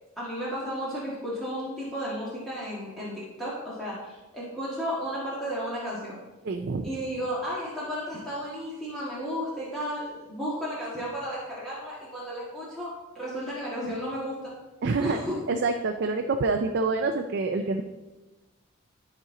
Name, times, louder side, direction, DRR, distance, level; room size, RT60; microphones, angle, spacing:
voice 1, 0.2-6.2 6.8-12.9 13.1-14.5 15.0-15.4, equal, ahead, -9 dB, 1.6 m, -33 dB
voice 2, 6.4-6.9 14.8-15.2 15.5-17.8, right 3 dB, 55° right, 5 dB, 0.4 m, -26 dB
12.0 x 4.4 x 3.7 m, 1.1 s
head